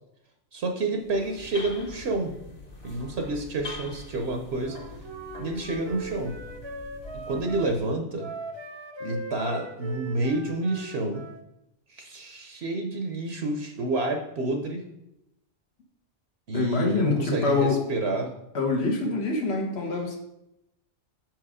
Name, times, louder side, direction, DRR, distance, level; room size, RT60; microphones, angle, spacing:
voice 1, 0.5-2.3 2.8-4.8 5.4-6.4 7.3-8.3 9.0-11.2 11.9-14.8 16.5-18.3, right 2 dB, 65° right, 3 dB, 1.0 m, -29 dB
sound 1, 0.9-7.9, left 2 dB, 35° left, 1.3 m, -44 dB
Wind instrument woodwind instrument, 4.6-7.7 8.2-11.4, right 3 dB, 35° right, 0.5 m, -40 dB
voice 2, 16.5-17.8 18.5-20.2, left 3 dB, 60° left, 2 dB, 1.4 m, -25 dB
6.1 x 4.7 x 4.9 m, 0.86 s
omnidirectional pair, 1.2 m